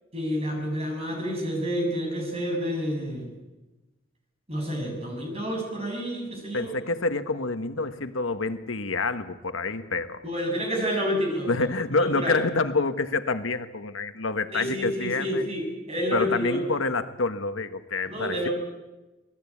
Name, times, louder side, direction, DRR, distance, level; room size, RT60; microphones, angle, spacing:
voice 1, 0.1-3.3 4.5-6.7 10.2-11.5 12.0-12.4 14.5-16.7 18.1-18.5, equal, 30° right, 1 dB, 7.3 m, -29 dB
voice 2, 6.5-10.2 11.5-15.4 16.1-18.5, left 3 dB, 85° left, 9 dB, 1.4 m, -27 dB
27.0 x 19.0 x 8.6 m, 1.1 s
head